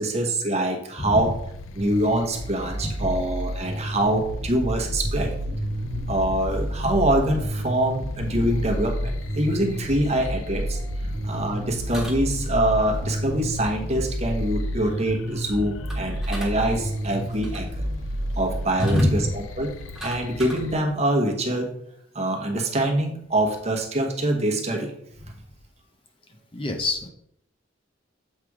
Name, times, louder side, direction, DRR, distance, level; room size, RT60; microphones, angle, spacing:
voice 1, 0.0-1.3 1.8-5.6 6.1-10.8 11.2-17.9 18.4-19.7 20.0-21.7 22.1-24.9, right 1 dB, 35° right, 2 dB, 1.1 m, -24 dB
voice 2, 1.0-1.3 2.8-3.1 10.9-11.3 18.8-19.2 25.2-25.3 26.5-27.1, left 1 dB, 25° left, 5 dB, 0.6 m, -25 dB
sound 1, 1.2-20.8, left 3 dB, 85° left, 0.4 m, -40 dB
sound 2, 1.8-18.6, right 1 dB, 55° right, 1.1 m, -30 dB
sound 3, 11.9-12.6 15.9-16.5 17.2-17.7 18.8-19.1 19.7-20.6, right 1 dB, ahead, 1.4 m, -38 dB
7.5 x 3.3 x 4.7 m, 0.71 s
head